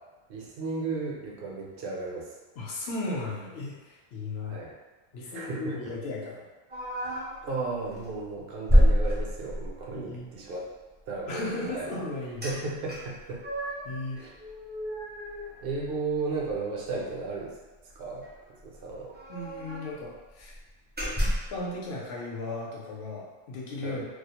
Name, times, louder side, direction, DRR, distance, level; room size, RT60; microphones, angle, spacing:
voice 1, 0.3-2.3 4.4-4.7 5.3-5.9 7.4-10.7 11.1-11.9 12.4-13.4 14.2-14.3 15.6-17.6 18.0-18.3 18.6-19.1 23.8-24.1, right 3 dB, 65° right, -3 dB, 0.7 m, -34 dB
voice 2, 2.6-4.6 5.1-6.4 9.9-10.3 11.2-12.4 13.8-14.2 19.3-20.5 21.2-24.1, left 2 dB, 70° left, -4 dB, 0.8 m, -36 dB
sound 1, 6.7-7.4 7.9-8.1 8.7-9.8 12.4-12.5 12.9-13.9 14.4-16.2 16.5-16.6 16.9-17.1 18.2-18.3 18.5-18.6 19.1-20.0 20.4-20.6 21.0-21.6, equal, 15° right, 0.3 m, -27 dB
2.3 x 2.0 x 2.8 m, 1.2 s
omnidirectional pair, 1.1 m